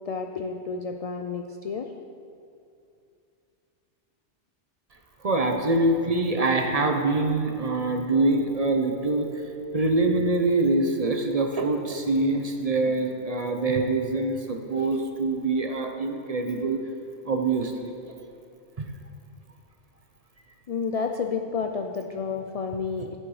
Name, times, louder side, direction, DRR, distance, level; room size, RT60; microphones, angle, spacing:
voice 1, 0.1-1.9 20.7-23.2, left 5 dB, 75° left, 4 dB, 0.3 m, -30 dB
voice 2, 5.2-9.3 9.7-16.8 17.2-17.9 18.8-18.9, right 2 dB, 40° right, 4 dB, 0.7 m, -24 dB
8.9 x 8.8 x 4.8 m, 2.5 s
omnidirectional pair, 1.2 m